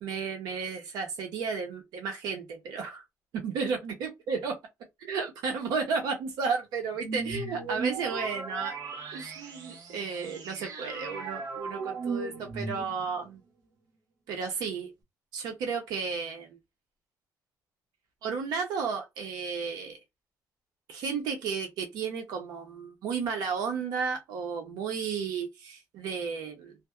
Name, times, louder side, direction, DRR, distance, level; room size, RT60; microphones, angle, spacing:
voice 1, 0.0-3.0 3.3-4.5 5.0-8.8 9.1-13.4 14.3-14.9 15.3-16.5 18.2-20.0 20.9-26.7, right 5 dB, 85° right, 0.7 m, -33 dB
sound 1, 6.9-13.2, right 4 dB, 70° right, 1.1 m, -37 dB
2.7 x 2.1 x 2.2 m
cardioid pair, 110°, 7 cm